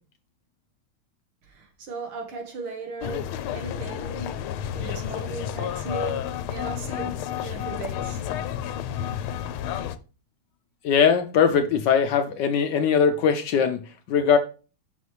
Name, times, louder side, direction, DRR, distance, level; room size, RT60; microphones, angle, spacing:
voice 1, 1.5-4.4 4.7-8.2, right 4 dB, 80° right, 2.5 m, -37 dB
sound 1, 3.0-10.0, left 10 dB, 90° left, 1.5 m, -31 dB
voice 2, 10.8-13.8 14.1-14.4, left 7 dB, 70° left, 1.1 m, -20 dB
7.2 x 6.1 x 3.2 m
omnidirectional pair, 2.3 m